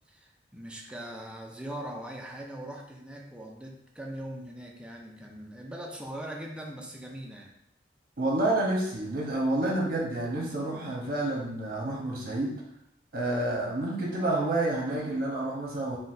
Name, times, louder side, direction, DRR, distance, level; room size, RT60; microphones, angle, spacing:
voice 1, 0.1-7.6, right 1 dB, 5° right, 0 dB, 0.4 m, -41 dB
voice 2, 8.2-12.6 13.1-16.0, right 2 dB, 55° right, -3 dB, 0.9 m, -29 dB
3.8 x 2.2 x 2.6 m, 0.78 s
head